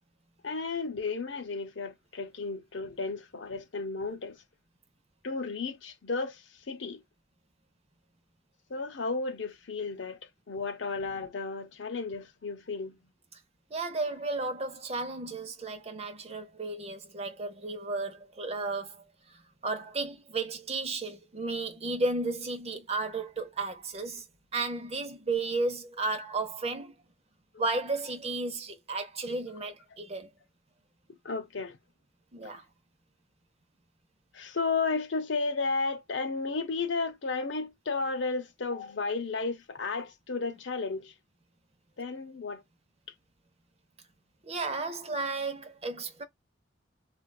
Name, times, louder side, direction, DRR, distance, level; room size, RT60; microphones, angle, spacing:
voice 1, 0.4-4.4 5.2-6.4 6.7-7.0 8.7-10.2 10.5-13.0 31.2-31.8 34.3-41.1 42.0-42.6, left 4 dB, 75° left, 0.7 m, -33 dB
voice 2, 13.7-19.0 19.3-24.2 24.5-26.9 27.6-30.3 32.3-32.6 44.4-46.2, right 3 dB, 35° right, 0.7 m, -33 dB
3.3 x 2.4 x 2.3 m
head